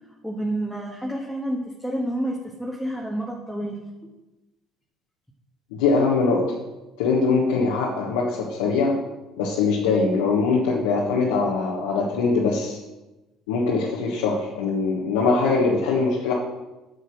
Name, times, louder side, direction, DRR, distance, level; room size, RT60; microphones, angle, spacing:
voice 1, 0.2-3.8, right 1 dB, ahead, -3 dB, 1.8 m, -29 dB
voice 2, 5.7-6.6 7.0-8.9 9.4-12.8 13.5-16.3, left 4 dB, 80° left, -3 dB, 1.4 m, -22 dB
8.8 x 6.8 x 6.3 m, 1.1 s
hypercardioid pair, 65°, 0 cm